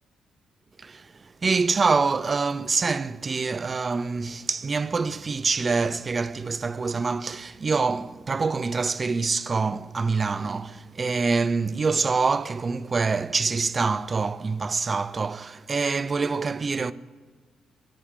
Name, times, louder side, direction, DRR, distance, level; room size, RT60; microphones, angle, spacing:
voice 1, 0.8-16.9, right 4 dB, 35° right, 0.3 m, -25 dB
15.0 x 8.5 x 3.6 m
cardioid pair, 90°, 0 cm